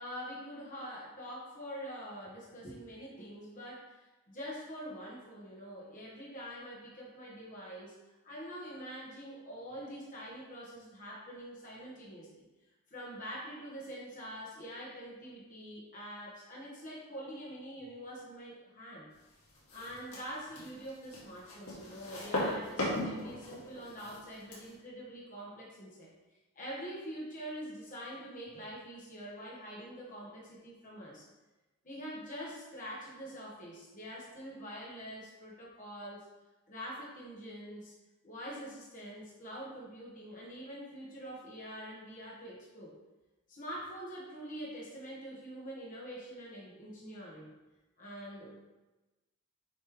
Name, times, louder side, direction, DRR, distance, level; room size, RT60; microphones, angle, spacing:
voice 1, 0.0-7.9 8.2-12.3 12.9-19.1 19.7-26.1 26.5-31.3 31.8-36.2 36.7-37.9 38.2-42.9 43.5-47.5 48.0-48.6, equal, 35° left, -5 dB, 1.3 m, -45 dB
sound 1, 19.5-24.7, left 1 dB, 80° left, 2.2 m, -38 dB
7.1 x 3.2 x 4.7 m, 1.1 s
head